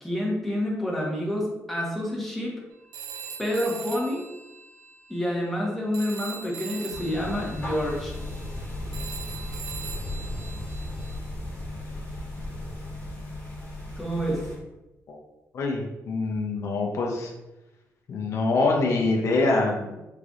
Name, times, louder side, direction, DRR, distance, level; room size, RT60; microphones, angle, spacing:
voice 1, 0.0-2.5 3.4-4.2 5.1-8.1 14.0-14.4, equal, 5° left, -4 dB, 1.0 m, -28 dB
Telephone, 2.9-5.7 5.9-11.2, right 7 dB, 85° right, 0.4 m, -41 dB
sound 1, 6.9-14.6, left 1 dB, 30° left, 1.3 m, -35 dB
voice 2, 15.5-17.3 18.1-20.0, left 3 dB, 60° left, 0 dB, 0.5 m, -25 dB
3.8 x 3.2 x 2.4 m, 1.0 s
cardioid pair, 105°, 6 cm